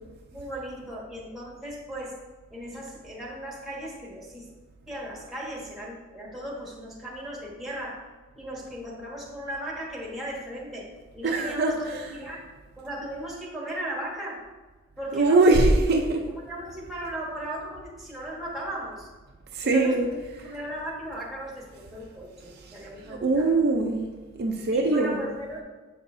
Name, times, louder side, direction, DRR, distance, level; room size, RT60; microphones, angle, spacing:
voice 1, 0.3-2.2 2.5-4.5 4.9-8.0 8.4-10.9 11.1-12.4 12.8-14.4 15.0-15.6 16.4-19.1 19.6-23.6 24.7-25.6, right 1 dB, ahead, -4 dB, 1.3 m, -37 dB
voice 2, 11.2-12.0 15.1-16.2 19.5-20.1 23.1-24.1 24.4-25.2, right 2 dB, 50° right, 1 dB, 0.5 m, -22 dB
7.7 x 5.4 x 2.7 m, 1.3 s
head